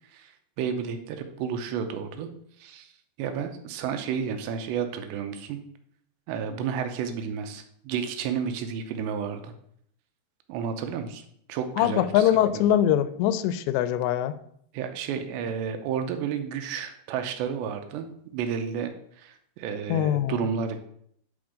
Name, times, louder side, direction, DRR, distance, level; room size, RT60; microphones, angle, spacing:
voice 1, 0.1-2.3 2.6-2.9 3.2-5.6 6.3-9.5 10.5-11.2 11.5-12.6 14.7-18.1 18.3-18.9 19.2-20.8, right 7 dB, 90° right, 7 dB, 2.9 m, -31 dB
voice 2, 11.8-14.4 19.9-20.5, left 11 dB, 85° left, 13 dB, 2.8 m, -23 dB
9.6 x 4.3 x 5.0 m, 0.67 s
omnidirectional pair, 5.0 m